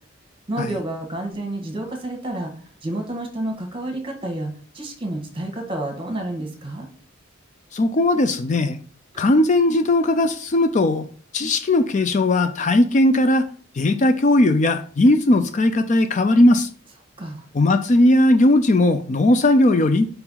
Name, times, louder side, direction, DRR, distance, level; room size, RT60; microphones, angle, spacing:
voice 1, 0.5-2.5 2.8-6.9 17.2-17.4, right 1 dB, 25° right, 3 dB, 1.6 m, -29 dB
voice 2, 7.7-8.8 9.2-11.1 11.3-13.5 13.8-16.7 17.5-20.1, left 1 dB, 35° left, 10 dB, 0.4 m, -17 dB
5.3 x 4.6 x 5.6 m, 0.44 s
head